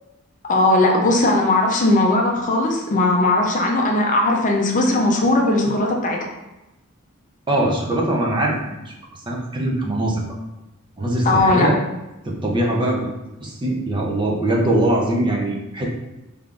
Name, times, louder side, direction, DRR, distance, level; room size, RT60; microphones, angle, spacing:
voice 1, 0.4-6.3 11.2-11.7, left 2 dB, 35° left, 0 dB, 0.5 m, -18 dB
voice 2, 7.5-8.9 9.3-10.2 11.0-11.8 12.2-13.1 13.4-15.9, right 1 dB, 25° right, -2 dB, 0.6 m, -21 dB
3.6 x 3.4 x 2.4 m, 0.98 s
head